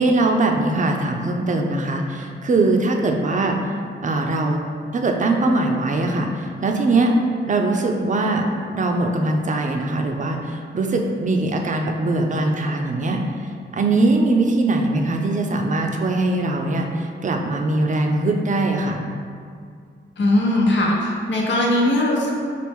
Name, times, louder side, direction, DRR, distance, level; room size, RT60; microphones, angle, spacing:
voice 1, 0.0-3.6 4.0-4.6 4.9-7.1 7.5-8.5 8.7-13.2 13.7-19.0, right 2 dB, 40° right, 2 dB, 0.5 m, -21 dB
voice 2, 20.2-22.3, left 1 dB, 70° left, -2 dB, 0.8 m, -19 dB
4.5 x 2.4 x 3.5 m, 2.2 s
cardioid pair, 70°, 20 cm